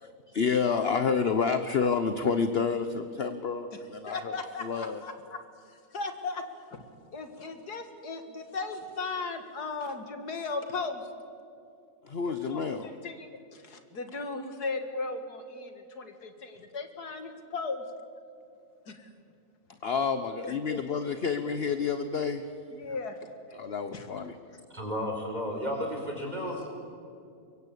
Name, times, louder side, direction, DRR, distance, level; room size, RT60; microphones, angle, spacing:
voice 1, 0.0-4.3 4.6-5.0 12.0-12.9 19.8-22.4 23.6-24.3, left 5 dB, 45° left, 9 dB, 1.1 m, -29 dB
voice 2, 4.1-5.4 5.7-6.4 6.7-6.8 7.1-11.0 12.3-17.8 18.9-19.1 20.4-20.8 22.7-23.2 23.9-24.1, left 3 dB, 80° left, 7 dB, 2.5 m, -37 dB
voice 3, 24.7-26.7, equal, 25° right, 1 dB, 4.9 m, -33 dB
24.0 x 23.5 x 8.4 m, 2.5 s
omnidirectional pair, 1.6 m